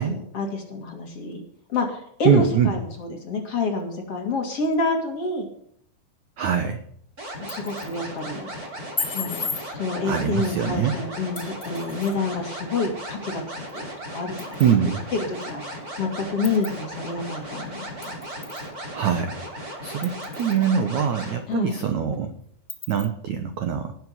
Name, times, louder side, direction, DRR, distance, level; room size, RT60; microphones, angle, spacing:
voice 1, 0.0-1.4 1.7-5.5 7.4-8.5 9.1-9.5 9.7-14.6 15.1-15.6 16.0-18.2 21.5-21.8, left 3 dB, 35° left, 2 dB, 3.2 m, -28 dB
voice 2, 2.3-2.7 6.4-6.8 10.0-11.0 14.6-15.0 18.9-22.3 22.9-23.9, right 7 dB, 70° right, 8 dB, 1.8 m, -23 dB
sound 1, 7.2-21.4, equal, 20° right, 3.6 m, -36 dB
sound 2, 7.3-8.0 9.0-9.6 11.4-12.2 13.7-13.8 14.4-14.8 15.4-15.5 16.4-16.8 18.0-18.7 19.1-19.2 20.0-20.7 21.2-21.3 21.7-21.8 22.7-23.1, left 4 dB, 15° left, 2.4 m, -34 dB
18.5 x 8.3 x 6.7 m, 0.66 s
omnidirectional pair, 5.1 m